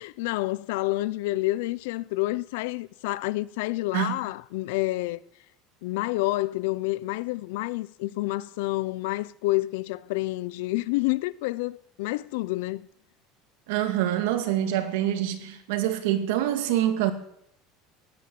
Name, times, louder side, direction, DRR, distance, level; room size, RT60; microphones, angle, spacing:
voice 1, 0.0-5.2 5.8-12.9, left 19 dB, 80° left, 0.7 m, -28 dB
voice 2, 13.7-17.1, right 12 dB, 85° right, 2.2 m, -25 dB
17.0 x 11.0 x 7.7 m
cardioid pair, 175°, 0 cm